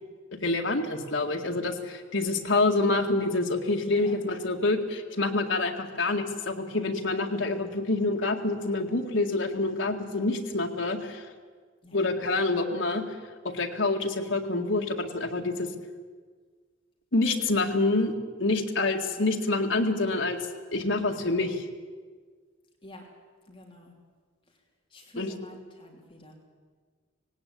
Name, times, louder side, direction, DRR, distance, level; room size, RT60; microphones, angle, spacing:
voice 1, 0.3-11.2 11.9-13.0 13.4-15.7 17.1-18.1 18.4-20.4 20.7-21.6 25.2-25.3, left 2 dB, 70° left, 3 dB, 2.0 m, -27 dB
voice 2, 23.5-23.9 24.9-26.4, left 1 dB, 25° left, 0 dB, 3.0 m, -48 dB
18.5 x 17.5 x 8.6 m, 1.5 s
head